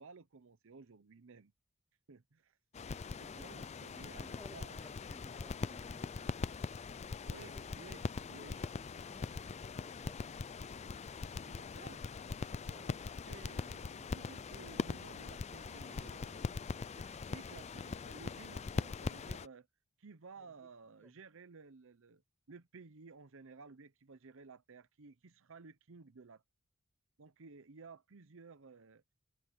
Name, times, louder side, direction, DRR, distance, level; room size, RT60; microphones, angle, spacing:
voice 1, 0.0-1.5 2.1-2.6 3.2-4.8 7.3-8.0 8.3-8.6 11.4-12.1 12.6-13.0 13.2-19.7 20.0-22.2 22.5-26.4 27.2-29.0, right 4 dB, 65° right, 0.8 m, -55 dB
sound 1, 2.7-19.5, left 4 dB, 30° left, 0.4 m, -42 dB
voice 2, 3.2-3.6 4.0-6.5 7.4-7.7 8.2-10.5 12.7-12.9 20.4-20.7 21.0-21.1, left 1 dB, 10° left, 2.7 m, -60 dB
head